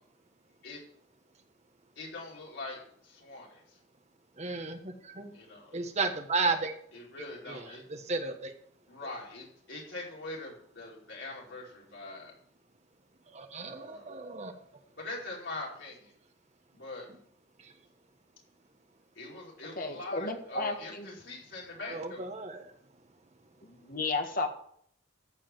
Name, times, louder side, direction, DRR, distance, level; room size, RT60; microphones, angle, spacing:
voice 1, 2.0-3.6 5.3-5.7 6.9-7.8 8.9-12.3 13.7-14.1 15.0-16.0 16.7-17.1 19.2-22.3, left 2 dB, 70° left, -3 dB, 5.0 m, -42 dB
voice 2, 4.4-5.3 5.7-6.7 7.5-8.5 13.3-14.5 21.9-22.6, right 3 dB, 35° right, 5 dB, 1.4 m, -33 dB
voice 3, 19.7-21.1 23.6-24.5, left 3 dB, 50° left, 4 dB, 1.6 m, -33 dB
14.5 x 5.1 x 7.5 m, 0.64 s
head